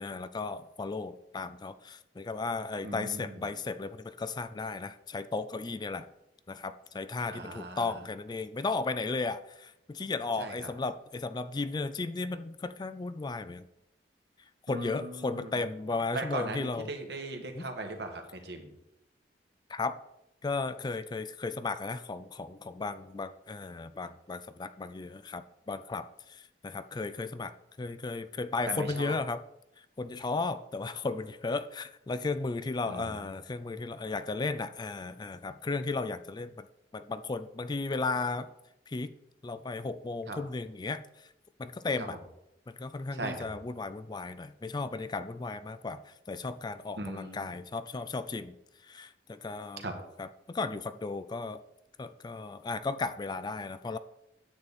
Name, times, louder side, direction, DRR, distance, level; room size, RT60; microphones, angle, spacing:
voice 1, 0.0-6.1 6.5-13.6 14.7-16.9 17.6-17.7 19.7-20.0 20.4-27.5 27.8-29.4 29.8-36.7 36.9-38.5 38.9-39.1 39.4-41.3 41.6-42.2 42.7-48.5 48.8-49.9 50.2-51.6 52.0-54.0, left 3 dB, 25° left, 12 dB, 0.3 m, -35 dB
voice 2, 2.8-3.3 7.3-7.9 10.4-10.5 14.7-15.5 16.1-18.7 28.7-29.1 32.9-33.2 40.3-40.4 43.1-43.3 46.9-47.5 49.8-49.9, right 2 dB, 65° right, 4 dB, 1.6 m, -38 dB
9.6 x 8.5 x 4.1 m, 0.85 s
head